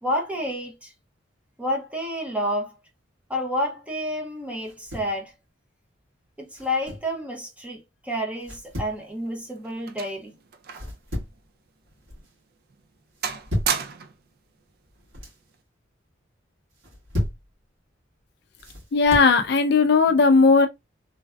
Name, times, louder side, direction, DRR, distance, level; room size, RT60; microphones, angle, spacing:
voice 1, 0.0-0.9 1.6-2.8 3.3-5.3 6.4-10.3, equal, 5° right, 0.6 m, -29 dB
sound 1, 4.6-5.2 6.5-7.1 8.4-9.0 10.7-11.5 11.8-12.3 13.2-13.8 14.9-15.4 16.7-17.5 18.6-19.4, left 1 dB, 80° right, 1.7 m, -33 dB
sound 2, 8.9-11.0 11.3-11.5 12.1-12.3 12.7-13.0 13.2-14.3 15.3-15.6, right 7 dB, 50° right, 0.4 m, -32 dB
voice 2, 18.9-20.7, left 4 dB, 55° left, 0.4 m, -17 dB
3.2 x 2.5 x 2.2 m
head